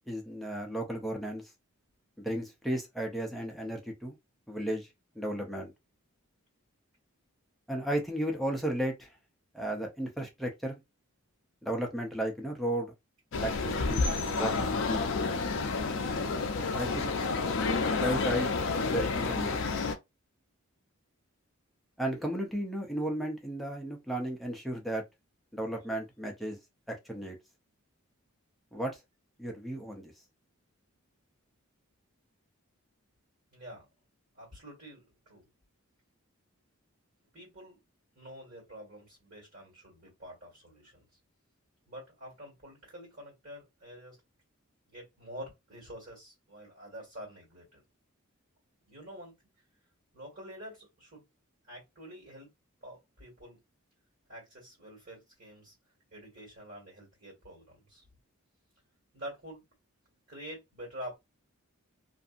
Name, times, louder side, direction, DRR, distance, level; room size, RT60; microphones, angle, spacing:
voice 1, 0.1-1.5 2.2-4.2 4.5-4.9 5.2-5.7 7.7-9.1 9.5-10.8 11.6-12.9 13.4-15.1 16.7-17.2 18.0-18.5 18.8-19.6 22.0-25.0 25.5-26.6 26.9-27.4 28.7-29.0 29.4-30.1, right 1 dB, ahead, 0.5 m, -34 dB
sound 1, 13.3-19.9, left 4 dB, 60° left, 0.4 m, -30 dB
voice 2, 33.5-33.9 34.3-35.5 37.3-37.8 38.1-41.1 41.9-44.2 44.9-47.8 48.9-49.3 50.1-51.2 51.7-52.5 52.8-53.6 54.3-55.8 56.1-58.1 59.1-59.6 60.3-61.2, equal, 50° right, 1.8 m, -47 dB
2.6 x 2.5 x 2.4 m
head